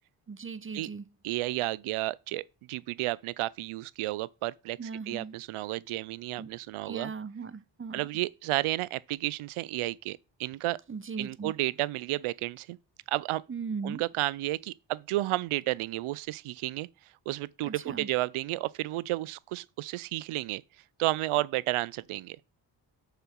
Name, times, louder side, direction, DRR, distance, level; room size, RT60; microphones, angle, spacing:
voice 1, 0.3-1.0 4.8-5.4 6.4-6.5 6.9-8.0 10.9-11.5 13.5-14.0 17.6-18.1, right 5 dB, 25° right, 0.9 m, -38 dB
voice 2, 1.2-4.8 5.1-7.1 7.9-10.8 11.2-12.8 13.1-13.4 13.8-16.9 17.3-20.6 21.0-22.5, right 17 dB, 85° right, 0.6 m, -32 dB
6.8 x 5.6 x 4.5 m
supercardioid pair, 50°, 49 cm